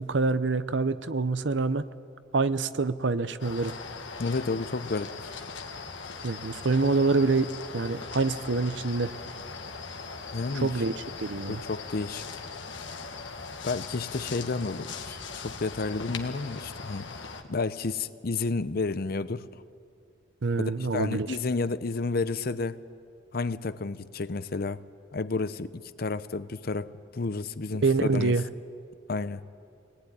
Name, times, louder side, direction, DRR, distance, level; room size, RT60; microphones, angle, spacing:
voice 1, 0.0-1.8 2.3-3.7 6.2-9.1 10.5-11.6 20.4-21.4 27.8-28.4, right 3 dB, 70° right, 14 dB, 0.8 m, -26 dB
sound 1, 3.4-17.4, left 4 dB, 75° left, 1.7 m, -40 dB
voice 2, 4.2-5.3 10.3-10.7 11.5-12.2 13.6-17.1 17.5-19.5 20.6-22.8 23.3-24.8 25.1-28.4 29.1-29.4, left 3 dB, 50° left, 14 dB, 0.7 m, -31 dB
22.5 x 19.0 x 9.9 m, 2.4 s
head